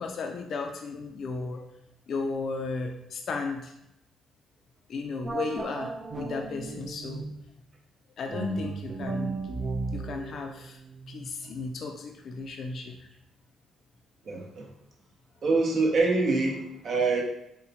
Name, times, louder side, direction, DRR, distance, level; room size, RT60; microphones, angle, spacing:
voice 1, 0.0-1.6 2.1-3.7 4.9-7.3 8.2-9.4 9.9-10.8 11.1-13.1, left 4 dB, 60° left, 3 dB, 0.4 m, -34 dB
sound 1, 5.2-7.5 8.3-11.6, right 3 dB, 35° right, 0.4 m, -36 dB
voice 2, 14.2-14.7 15.4-17.2, right 3 dB, 55° right, 0 dB, 0.8 m, -25 dB
4.0 x 2.1 x 2.7 m, 0.80 s
cardioid pair, 90°, 0 cm